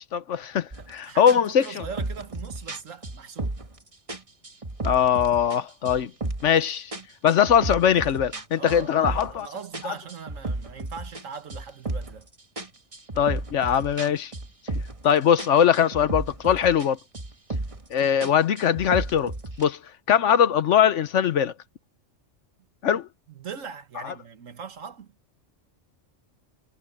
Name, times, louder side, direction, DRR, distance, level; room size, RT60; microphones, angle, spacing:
voice 1, 0.0-1.8 4.8-6.1 6.4-6.9 7.2-9.5 13.2-14.3 15.0-17.0 17.9-19.3 19.6-19.8 20.1-21.5 22.8-23.1 24.0-24.1, left 8 dB, 70° left, 1.1 m, -21 dB
sound 1, 0.7-0.9 1.3-3.8 4.1-5.6 5.8-6.6 6.9-9.4 9.7-12.2 12.6-15.1 15.4-16.9 17.1-17.9 18.2-19.6, right 2 dB, 25° right, 1.6 m, -33 dB
voice 2, 0.8-3.6 8.6-12.3 23.4-25.1, right 6 dB, 90° right, 1.7 m, -40 dB
omnidirectional pair, 1.3 m